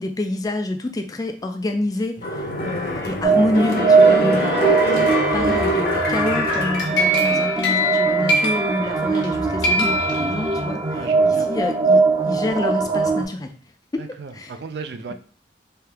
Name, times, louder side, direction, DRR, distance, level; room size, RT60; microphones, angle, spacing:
voice 1, 0.0-5.0 5.3-13.5 13.9-14.1 14.3-14.5, left 1 dB, 20° left, 5 dB, 0.3 m, -27 dB
sound 1, 2.2-7.7 8.1-8.2, equal, 55° left, 0.7 m, -24 dB
sound 2, 3.2-13.2, right 4 dB, 20° right, 0.6 m, -20 dB
sound 3, 6.5-9.3 9.6-10.9, equal, 80° left, 1.0 m, -23 dB
voice 2, 10.9-11.5 14.0-15.1, right 4 dB, 65° right, 9 dB, 0.4 m, -35 dB
3.4 x 2.8 x 3.4 m, 0.41 s
head